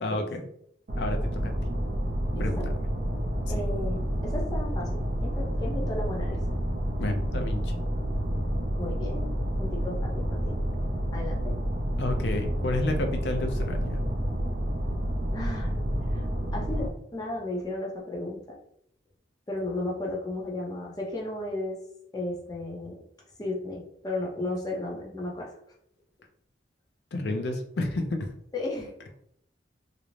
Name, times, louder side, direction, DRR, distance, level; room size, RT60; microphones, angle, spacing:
voice 1, 0.0-0.5 1.0-1.5 2.4-2.7 3.6-3.7 7.0-7.7 12.0-14.0 27.1-28.3, left 2 dB, 70° left, 5 dB, 0.4 m, -30 dB
sound 1, 0.9-16.9, equal, 50° right, 0.5 m, -29 dB
voice 2, 2.3-2.7 3.5-6.4 8.8-9.3 9.6-10.6 11.1-11.6 15.3-15.8 16.1-16.2 16.5-18.6 19.5-21.8 22.1-23.0 23.4-25.6 28.5-28.9, left 2 dB, 20° left, -2 dB, 0.6 m, -34 dB
2.5 x 2.0 x 3.0 m, 0.71 s
head